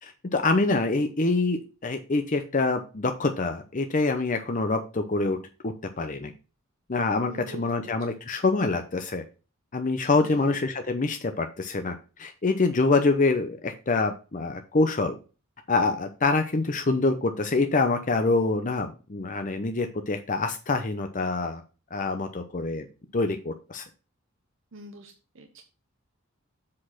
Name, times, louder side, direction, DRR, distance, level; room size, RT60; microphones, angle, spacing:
voice 1, 0.0-5.4 5.6-6.3 6.9-9.2 9.7-15.2 15.7-21.6 21.9-22.9 23.1-23.8, left 3 dB, 40° left, 6 dB, 0.7 m, -25 dB
voice 2, 7.3-7.9 10.2-10.5 24.7-25.6, right 2 dB, 65° right, 4 dB, 1.0 m, -45 dB
7.6 x 4.3 x 5.8 m, 0.34 s
head